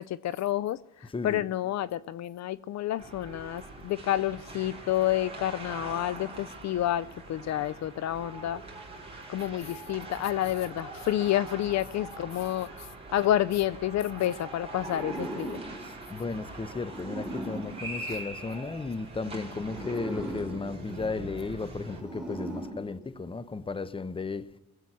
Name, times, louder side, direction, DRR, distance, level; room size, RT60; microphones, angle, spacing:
voice 1, 0.0-8.6 9.3-12.7 13.1-15.6 18.1-18.2, left 12 dB, 60° left, 0.5 m, -29 dB
voice 2, 1.1-1.5 16.1-24.4, left 4 dB, 20° left, 0.8 m, -35 dB
sound 1, 3.0-22.0, right 2 dB, 20° right, 4.1 m, -43 dB
sound 2, 14.7-18.9 19.6-23.5, right 1 dB, 5° right, 3.7 m, -40 dB
22.0 x 8.2 x 6.1 m
cardioid pair, 90°, 30 cm